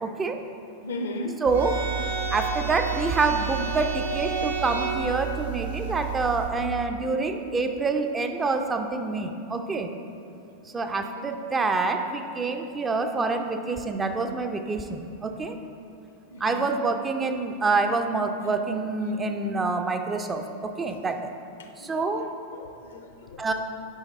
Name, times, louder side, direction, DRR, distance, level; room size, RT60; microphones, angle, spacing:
voice 1, 0.0-0.4 1.4-1.8 2.3-9.9 10.7-15.6 16.4-21.2 21.8-22.3 23.4-23.5, right 3 dB, 15° right, 5 dB, 0.5 m, -27 dB
voice 2, 0.8-1.4 11.2-11.3 16.3-16.7 18.4-18.5 21.6-22.0 22.5-23.4, left 1 dB, 65° left, 5 dB, 0.7 m, -36 dB
sound 1, 1.5-6.5, right 6 dB, 70° right, 1.1 m, -30 dB
9.2 x 5.2 x 4.1 m, 2.8 s
figure-of-eight pair, 90°, 0 cm